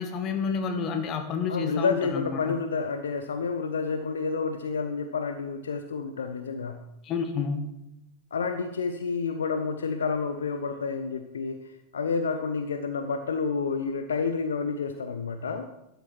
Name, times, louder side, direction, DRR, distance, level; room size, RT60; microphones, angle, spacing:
voice 1, 0.0-2.6 7.0-7.7, left 5 dB, 35° left, 7 dB, 1.2 m, -29 dB
voice 2, 1.5-6.8 8.3-11.6 11.9-15.7, left 5 dB, 70° left, 8 dB, 0.6 m, -29 dB
12.0 x 6.8 x 4.4 m, 0.89 s
figure-of-eight pair, 90°, 0 cm